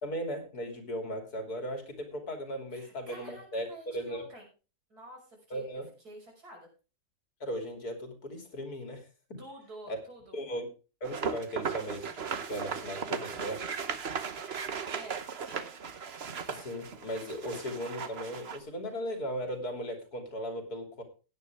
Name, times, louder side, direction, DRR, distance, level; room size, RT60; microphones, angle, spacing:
voice 1, 0.0-4.2 5.5-5.9 7.4-9.0 9.3-9.4 9.9-10.0 10.3-10.7 11.0-13.6 16.5-21.0, equal, 75° left, 5 dB, 3.4 m, -37 dB
voice 2, 2.7-4.5 4.9-5.7 6.0-6.7 9.4-10.4 14.9-15.7, right 1 dB, 80° right, 1 dB, 6.2 m, -49 dB
sound 1, 11.0-18.6, right 6 dB, 45° right, 1.2 m, -37 dB
15.5 x 10.0 x 3.5 m, 0.32 s
omnidirectional pair, 1.6 m